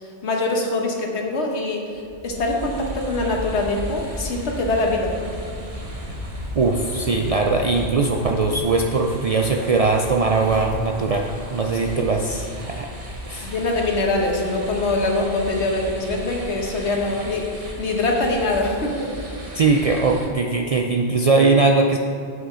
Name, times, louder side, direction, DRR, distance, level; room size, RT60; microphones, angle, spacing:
voice 1, 0.2-1.8 2.2-5.1 12.0-12.1 13.4-19.1, left 2 dB, 80° left, 1 dB, 1.4 m, -23 dB
Wind, 1.9-14.9, left 1 dB, 45° left, 1.5 m, -40 dB
sound 1, 2.2-20.3, equal, 35° right, 1.1 m, -36 dB
voice 2, 6.6-12.9 13.3-13.5 19.5-22.0, right 3 dB, 55° right, 1 dB, 0.4 m, -20 dB
8.1 x 5.9 x 4.9 m, 2.4 s
omnidirectional pair, 1.1 m